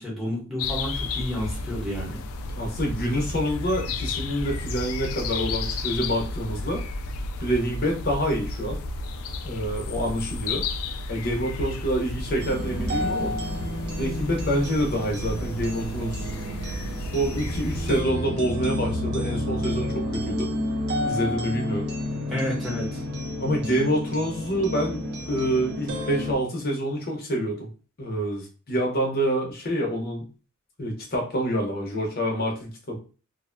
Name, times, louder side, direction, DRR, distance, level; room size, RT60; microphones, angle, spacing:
voice 1, 0.0-2.2 22.3-23.0, equal, ahead, -5 dB, 1.0 m, -30 dB
sound 1, 0.6-18.0, left 3 dB, 80° left, 0.3 m, -32 dB
voice 2, 2.6-6.8 7.4-8.8 9.4-10.6 11.1-13.4 13.9-16.3 17.1-20.5 21.0-21.9 23.4-27.7 28.0-30.3 30.8-33.0, equal, 45° left, 0 dB, 0.8 m, -27 dB
sound 2, 12.4-26.3, left 1 dB, 50° right, 0.5 m, -30 dB
2.6 x 2.2 x 2.5 m, 0.35 s
head